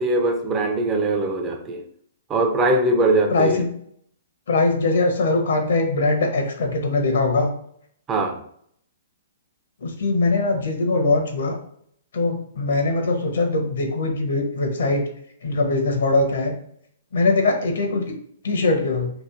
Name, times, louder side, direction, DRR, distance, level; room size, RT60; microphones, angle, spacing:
voice 1, 0.0-1.8 2.3-3.6 8.1-8.4, right 2 dB, 20° right, 4 dB, 0.4 m, -21 dB
voice 2, 3.3-3.7 4.5-7.5 9.8-11.6 12.1-15.1 15.4-16.5 17.1-18.1 18.4-19.1, left 3 dB, 70° left, 4 dB, 0.7 m, -21 dB
2.8 x 2.5 x 2.4 m, 0.66 s
hypercardioid pair, 130°, 0 cm